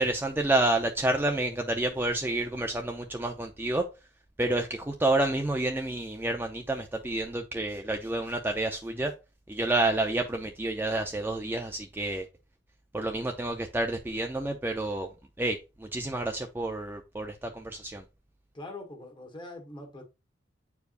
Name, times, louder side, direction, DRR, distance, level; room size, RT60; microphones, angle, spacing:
voice 1, 0.0-3.8 4.4-9.1 9.5-12.3 12.9-18.0, right 2 dB, 10° right, 0.5 m, -29 dB
voice 2, 18.5-20.0, left 2 dB, 25° left, 1.5 m, -43 dB
8.1 x 4.6 x 2.5 m
head